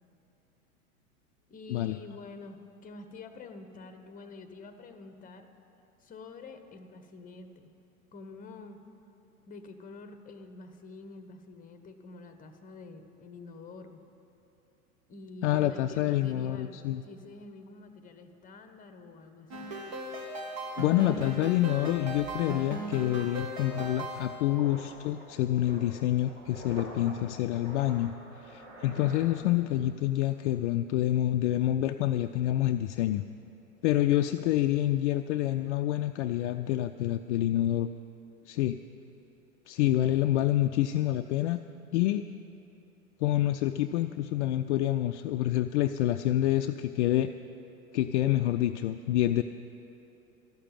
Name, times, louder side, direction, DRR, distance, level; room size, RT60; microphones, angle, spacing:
voice 1, 1.5-5.5 6.0-7.7 8.1-8.8 9.5-14.0 15.1-19.7, left 3 dB, 20° left, 8 dB, 1.0 m, -47 dB
voice 2, 15.4-17.0 20.8-28.1 28.5-33.2 33.8-37.9 38.5-38.8 39.7-41.6 41.9-42.2 43.2-47.3 47.9-49.4, left 13 dB, 55° left, 8 dB, 0.5 m, -27 dB
sound 1, 19.5-24.5, right 1 dB, 45° right, 2.1 m, -38 dB
sound 2, 21.5-29.9 30.1-30.4, equal, 70° right, 3.3 m, -48 dB
13.5 x 6.7 x 9.0 m, 3.0 s
hypercardioid pair, 100°, 44 cm